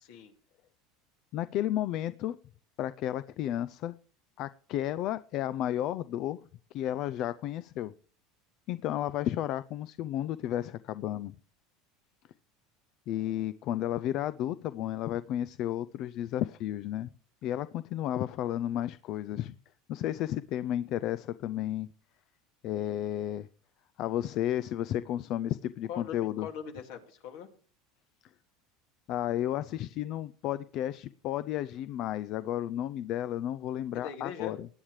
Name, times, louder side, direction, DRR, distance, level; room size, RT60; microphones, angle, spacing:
voice 1, 1.3-2.4 2.8-4.0 4.4-6.4 6.7-7.9 8.7-11.3 13.1-17.1 17.4-19.5 19.9-21.9 22.6-23.5 24.0-26.5 29.1-34.7, left 12 dB, 55° left, 0.4 m, -32 dB
voice 2, 25.9-27.5 34.0-34.6, left 8 dB, 75° left, 2.4 m, -41 dB
20.0 x 8.8 x 3.3 m
supercardioid pair, 120°, 0 cm